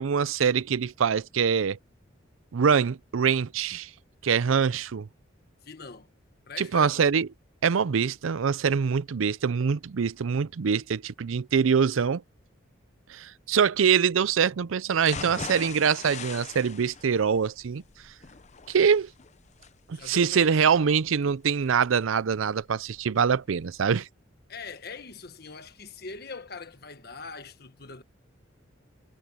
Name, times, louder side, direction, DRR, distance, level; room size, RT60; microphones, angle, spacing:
voice 1, 0.0-1.8 2.5-3.9 4.2-5.1 6.6-7.3 7.6-12.2 13.1-17.8 18.7-19.1 20.1-24.1, right 6 dB, 90° right, 0.5 m, -24 dB
voice 2, 5.6-6.1 6.5-7.1 19.9-20.8 24.5-28.0, left 4 dB, 50° left, 1.4 m, -42 dB
sound 1, 15.0-23.0 23.4-23.5 23.9-24.0, left 5 dB, 35° left, 0.7 m, -42 dB
head